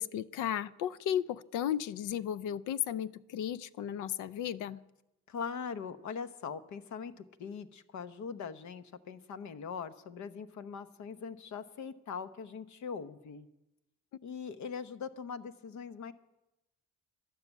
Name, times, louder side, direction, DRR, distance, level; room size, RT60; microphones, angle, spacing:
voice 1, 0.0-4.8, left 10 dB, 90° left, 17 dB, 0.6 m, -34 dB
voice 2, 5.3-13.5 14.2-16.1, left 6 dB, 70° left, 11 dB, 1.0 m, -41 dB
12.5 x 11.5 x 8.1 m, 0.94 s
cardioid pair, 90°, 30 cm